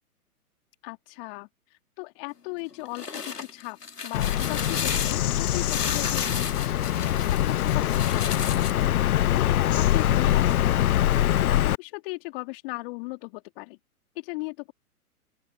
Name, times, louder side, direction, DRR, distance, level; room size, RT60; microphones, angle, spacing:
voice 1, 0.8-1.5 2.0-3.1 3.4-8.7 9.2-11.0 11.4-13.8 14.1-14.7, left 27 dB, 35° left, 3.0 m, -37 dB
sound 1, 2.7-8.9, left 5 dB, 85° left, 2.3 m, -34 dB
Bird vocalization bird call bird song, 4.1-11.8, left 12 dB, 70° left, 0.6 m, -23 dB
open air
figure-of-eight pair, 120°, 46 cm